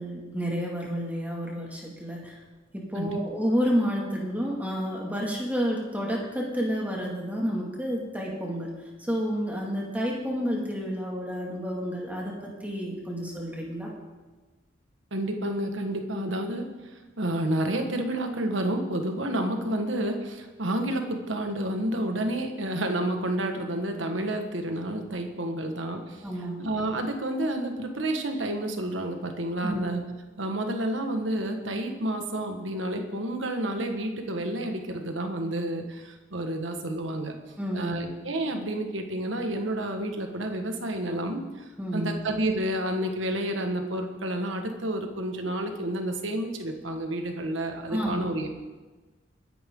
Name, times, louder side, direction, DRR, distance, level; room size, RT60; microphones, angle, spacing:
voice 1, 0.0-2.3 2.7-8.7 9.1-13.9 26.2-26.6 29.6-29.8 37.6-38.0 41.8-42.2 47.9-48.3, equal, 10° right, -2 dB, 2.4 m, -30 dB
voice 2, 15.1-16.7 17.2-26.2 26.6-30.0 30.4-37.3 37.7-41.4 41.9-48.5, right 1 dB, 90° right, 4 dB, 1.7 m, -30 dB
21.5 x 10.0 x 3.9 m, 1.3 s
head